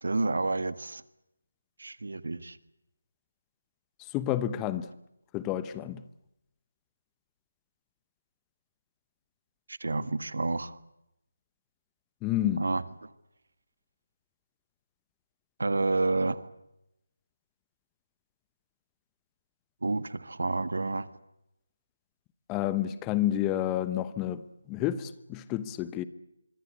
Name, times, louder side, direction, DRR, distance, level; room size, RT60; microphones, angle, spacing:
voice 1, 0.0-1.0 1.8-2.6 9.7-10.8 12.6-13.1 15.6-16.5 19.8-21.1, right 3 dB, 70° right, 1.7 m, -29 dB
voice 2, 4.1-4.9 5.3-6.0 12.2-12.6 22.5-24.4 24.7-26.0, left 12 dB, 15° left, 0.9 m, -29 dB
25.5 x 23.5 x 8.4 m
figure-of-eight pair, 155°, 0 cm